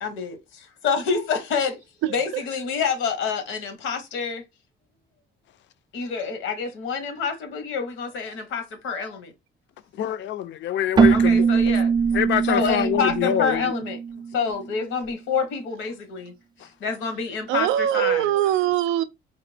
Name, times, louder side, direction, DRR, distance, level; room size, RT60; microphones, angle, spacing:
voice 1, 0.0-1.8 2.1-4.4 5.9-9.3 11.1-11.9 12.5-14.0 14.3-16.3 16.8-18.3, left 5 dB, 90° left, 0.9 m, -27 dB
voice 2, 2.0-2.4 17.5-19.0, right 12 dB, 85° right, 0.4 m, -22 dB
voice 3, 10.0-11.5 12.1-13.7, left 10 dB, 65° left, 0.4 m, -25 dB
Keyboard (musical), 11.0-14.6, right 6 dB, 20° right, 0.3 m, -21 dB
4.0 x 2.2 x 3.2 m
cardioid pair, 90°, 20 cm